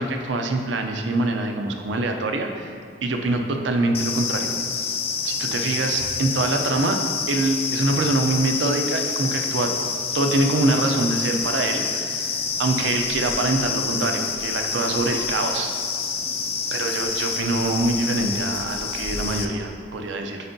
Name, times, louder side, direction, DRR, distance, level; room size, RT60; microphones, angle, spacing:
voice 1, 0.0-4.5 5.2-7.0 7.3-9.7 10.1-12.3 12.6-15.7 16.7-20.4, right 2 dB, 85° right, 4 dB, 0.6 m, -24 dB
sound 1, 3.9-19.4, left 5 dB, 35° left, 0.4 m, -27 dB
8.2 x 4.3 x 2.7 m, 2.1 s
head